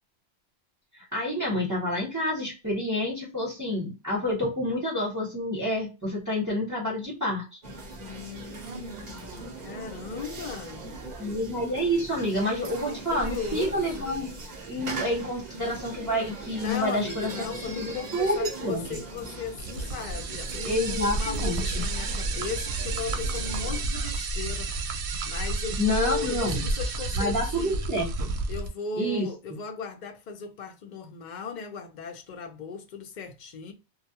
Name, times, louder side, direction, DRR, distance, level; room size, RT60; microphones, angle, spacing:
voice 1, 0.9-7.6 11.2-14.3 14.7-17.3 17.7-18.8 20.6-21.8 25.8-26.6 27.2-28.3 29.0-29.3, left 1 dB, 20° right, 0.9 m, -28 dB
sound 1, 7.6-23.8, right 3 dB, 45° right, 0.7 m, -40 dB
voice 2, 8.0-10.8 12.8-14.1 16.5-24.7 25.3-27.8 28.5-33.7, left 5 dB, 55° left, 0.6 m, -37 dB
sound 2, 19.6-28.7, right 3 dB, 90° right, 0.9 m, -31 dB
2.3 x 2.1 x 2.7 m
omnidirectional pair, 1.1 m